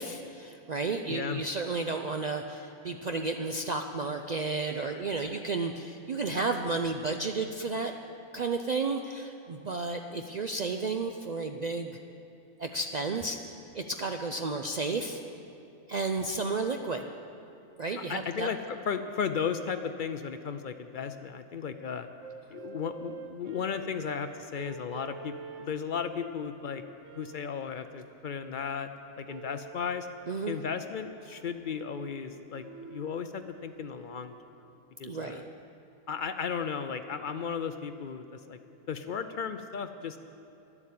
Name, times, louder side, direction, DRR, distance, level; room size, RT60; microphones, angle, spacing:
voice 1, 0.0-7.9 8.3-12.0 12.6-13.4 13.7-15.2 15.9-17.1 17.8-18.5 30.3-30.6 35.0-35.5, right 3 dB, 85° right, 5 dB, 0.3 m, -32 dB
voice 2, 1.1-1.4 18.0-22.1 22.5-26.8 27.2-28.9 29.2-30.1 30.5-34.3 35.0-35.4 36.1-38.6 38.9-40.2, left 6 dB, 70° left, 9 dB, 0.4 m, -35 dB
sound 1, 22.2-26.4 27.0-27.6 29.2-29.9 30.5-34.4, right 6 dB, 65° right, 1.0 m, -48 dB
12.0 x 11.0 x 8.5 m, 2.8 s
omnidirectional pair, 1.5 m